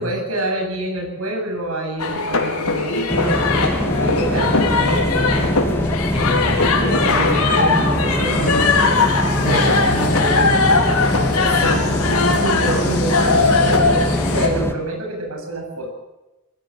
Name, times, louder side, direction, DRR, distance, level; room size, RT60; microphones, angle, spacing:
voice 1, 0.0-3.4 4.0-5.0 6.8-9.8 11.5-11.8 12.4-15.9, right 1 dB, 70° right, 1 dB, 7.9 m, -27 dB
sound 1, 2.0-14.5, left 4 dB, 85° left, 4.4 m, -19 dB
sound 2, 3.1-14.7, left 1 dB, 10° left, 2.1 m, -22 dB
voice 2, 6.1-6.6 9.3-11.2, equal, 25° left, 0 dB, 4.5 m, -28 dB
23.0 x 16.5 x 7.8 m, 1.0 s
head